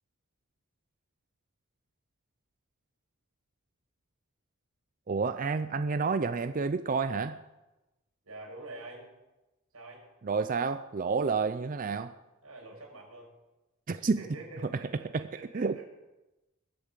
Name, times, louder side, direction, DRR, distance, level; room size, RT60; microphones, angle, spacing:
voice 1, 5.1-7.4 10.2-12.1 13.9-14.2 15.1-15.2 15.5-15.8, right 4 dB, 40° right, 0.5 m, -29 dB
voice 2, 8.2-9.1 9.7-10.0 12.4-13.3 13.9-15.8, right 2 dB, 90° right, 5.8 m, -46 dB
20.5 x 8.5 x 7.4 m
head